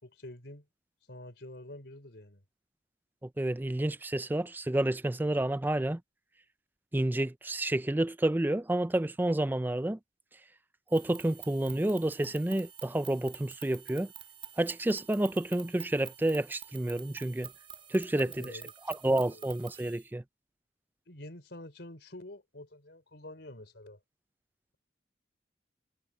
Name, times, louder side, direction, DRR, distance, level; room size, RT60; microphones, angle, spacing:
voice 1, 0.0-0.7 1.1-2.4 18.1-18.7 19.3-19.5 21.1-24.0, left 1 dB, 65° left, 4.4 m, -47 dB
voice 2, 3.4-6.0 6.9-10.0 10.9-14.1 14.6-17.5 17.9-18.5 18.9-20.2, right 1 dB, 10° right, 0.4 m, -29 dB
sound 1, 10.9-20.1, right 10 dB, 30° right, 4.9 m, -49 dB
head